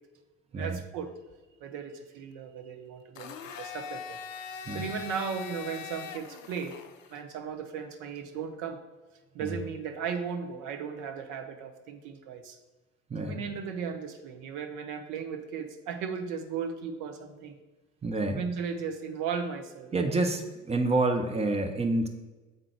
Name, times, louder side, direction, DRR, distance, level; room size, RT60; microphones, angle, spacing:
voice 1, 0.5-1.1 1.6-4.2 4.7-6.8 7.1-8.8 9.3-12.6 13.2-17.6 18.3-20.2, right 6 dB, 50° right, 6 dB, 0.8 m, -36 dB
Domestic sounds home sounds, 3.2-7.2, left 8 dB, 80° left, 0.5 m, -42 dB
voice 2, 13.1-13.4 18.0-18.4 19.9-22.1, right 2 dB, 15° right, 5 dB, 0.7 m, -28 dB
7.7 x 3.7 x 3.4 m, 1.2 s
figure-of-eight pair, 60°, 39 cm